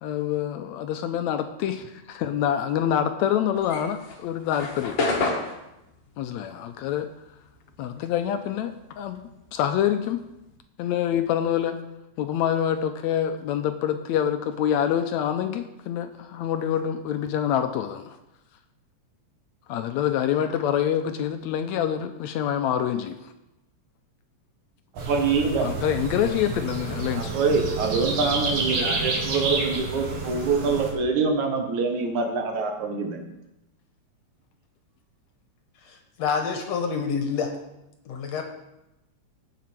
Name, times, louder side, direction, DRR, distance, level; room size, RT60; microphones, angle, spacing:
voice 1, 0.0-5.0 6.2-7.1 7.8-9.2 9.5-10.2 10.8-11.8 12.2-18.2 19.7-23.2 25.6-27.4, left 10 dB, 80° left, 8 dB, 1.8 m, -26 dB
sound 1, 3.6-8.3 8.6-10.6, left 3 dB, 50° left, 1.7 m, -31 dB
sound 2, 25.0-30.9, right 3 dB, 55° right, 3.0 m, -29 dB
voice 2, 25.1-25.7 27.1-33.2, right 4 dB, 75° right, 3 dB, 2.8 m, -25 dB
voice 3, 35.9-37.5 38.1-38.4, left 6 dB, 65° left, 5 dB, 2.2 m, -27 dB
16.5 x 6.0 x 4.5 m, 0.91 s
omnidirectional pair, 3.4 m